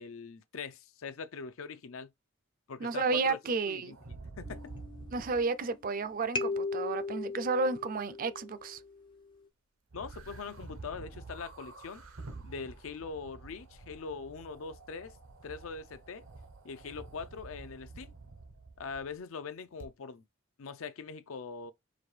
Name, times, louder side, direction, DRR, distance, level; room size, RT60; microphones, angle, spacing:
voice 1, 0.0-2.1 2.7-3.4 3.7-4.0 4.4-4.6 9.9-12.0 12.4-15.2 15.4-16.2 16.6-18.1 18.8-20.2 20.6-21.7, left 5 dB, 75° left, 0.5 m, -42 dB
voice 2, 2.8-3.9 5.1-8.8, right 4 dB, 40° right, 0.4 m, -32 dB
sound 1, 3.9-5.5 9.9-19.2 19.8-19.9, right 3 dB, 80° right, 0.8 m, -49 dB
sound 2, 4.5-5.9 6.4-9.0, left 3 dB, 25° left, 0.4 m, -38 dB
5.0 x 2.6 x 3.2 m
head